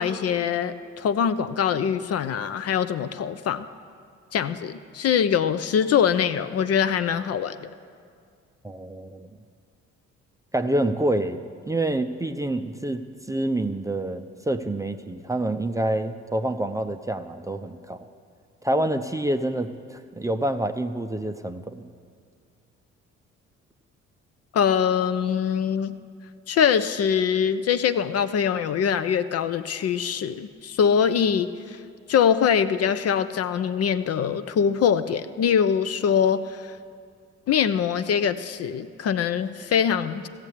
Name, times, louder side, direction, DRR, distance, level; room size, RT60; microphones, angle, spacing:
voice 1, 0.0-3.6 4.3-7.7 24.5-26.0 26.5-31.8 32.1-36.7 37.5-40.3, left 7 dB, 40° left, 12 dB, 0.6 m, -23 dB
voice 2, 8.6-9.3 10.5-18.1 18.6-21.9, right 1 dB, 10° right, 7 dB, 0.5 m, -27 dB
15.5 x 7.3 x 8.3 m, 2.2 s
figure-of-eight pair, 45°, 36 cm